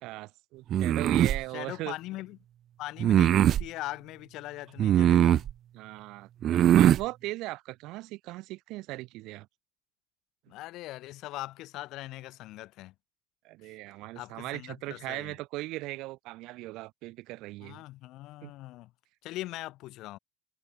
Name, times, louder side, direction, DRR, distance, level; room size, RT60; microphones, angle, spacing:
voice 1, 0.0-2.0 5.7-9.5 13.4-17.8 18.4-18.5, right 19 dB, 75° right, 1.1 m, -38 dB
sound 1, 0.7-1.4 3.0-3.6 4.8-5.5 6.4-7.0, right 11 dB, 50° right, 0.5 m, -21 dB
voice 2, 1.5-2.4 2.8-5.5 10.5-12.9 13.6-13.7 14.1-15.3 17.6-18.9 19.2-20.2, left 17 dB, 65° left, 6.7 m, -41 dB
cardioid pair, 135°, 0 cm